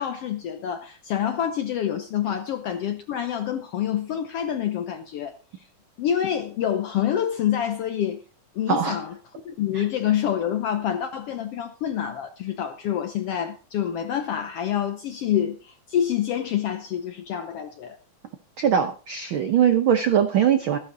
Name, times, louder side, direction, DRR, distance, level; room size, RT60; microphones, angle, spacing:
voice 1, 0.0-5.7 6.0-8.2 8.5-9.1 9.4-18.0, left 10 dB, 75° left, 1.4 m, -27 dB
voice 2, 18.6-20.8, right 8 dB, 75° right, 1.1 m, -21 dB
14.5 x 11.0 x 3.9 m
omnidirectional pair, 3.6 m